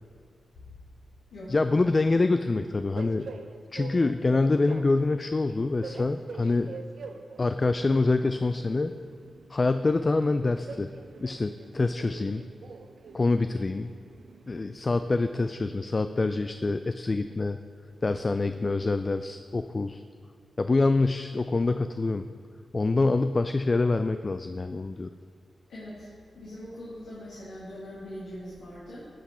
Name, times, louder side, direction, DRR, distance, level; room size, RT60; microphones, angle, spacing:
voice 1, 1.5-3.3 3.7-6.8 7.4-8.9 9.5-10.9 11.2-12.4 13.1-13.9 14.5-17.6 18.0-20.0 20.6-22.3 22.7-25.1, left 3 dB, 40° left, 9 dB, 0.3 m, -26 dB
Train, 1.6-15.5, right 4 dB, 70° right, 0.5 m, -46 dB
voice 2, 25.7-26.1 26.3-29.1, equal, 85° left, -9 dB, 2.0 m, -41 dB
12.0 x 5.9 x 4.3 m, 2.1 s
supercardioid pair, 40°, 0 cm